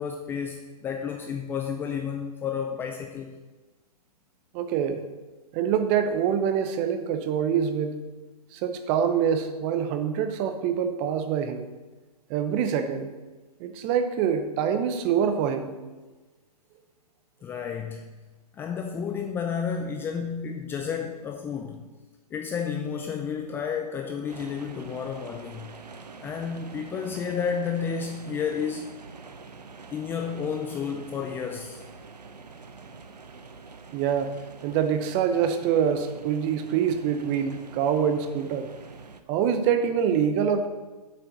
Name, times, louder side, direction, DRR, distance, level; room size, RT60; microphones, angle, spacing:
voice 1, 0.0-3.4 17.4-18.1 18.5-21.9 22.3-25.7 26.2-28.9 29.9-31.8, left 6 dB, 10° left, 3 dB, 0.5 m, -31 dB
voice 2, 4.5-5.0 5.5-8.0 8.5-11.7 12.3-13.1 13.6-15.7 33.9-34.3 34.6-38.7 39.3-40.7, right 8 dB, 25° right, 8 dB, 0.8 m, -25 dB
sound 1, 24.3-39.2, right 4 dB, 80° right, 0.9 m, -45 dB
7.7 x 6.7 x 5.8 m, 1.2 s
figure-of-eight pair, 130°, 20 cm